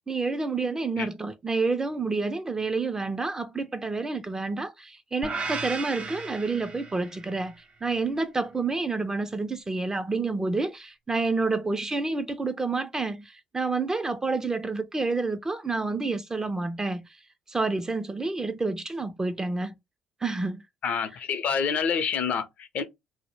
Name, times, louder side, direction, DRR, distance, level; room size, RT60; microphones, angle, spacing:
voice 1, 0.1-7.5 7.8-17.2 17.5-19.8 20.2-20.6, right 3 dB, 20° right, 0.4 m, -29 dB
sound 1, 5.2-7.4, right 4 dB, 45° right, 0.8 m, -35 dB
voice 2, 20.8-22.8, left 6 dB, 60° left, 0.6 m, -27 dB
2.1 x 2.0 x 3.0 m
hypercardioid pair, 60°, 3 cm